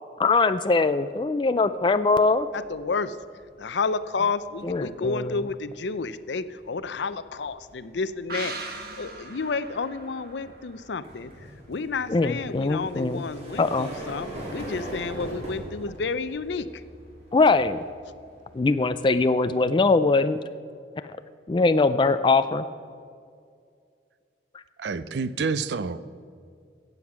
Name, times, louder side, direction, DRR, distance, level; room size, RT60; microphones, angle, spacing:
voice 1, 0.2-2.5 4.7-5.4 12.1-13.2 13.6-13.9 17.3-17.8 18.5-20.4 21.5-22.7, left 3 dB, 25° left, 0.3 m, -22 dB
sound 1, 1.7-2.0 2.4-19.1, equal, 35° right, 3.2 m, -43 dB
voice 2, 2.5-3.2 3.6-8.5 8.9-11.3 11.7-16.8, left 4 dB, 75° left, 0.5 m, -30 dB
sound 2, 8.3-11.8 12.1-12.2, right 3 dB, 55° right, 1.3 m, -40 dB
voice 3, 24.8-26.0, right 4 dB, 70° right, 0.5 m, -28 dB
15.5 x 7.9 x 5.9 m
head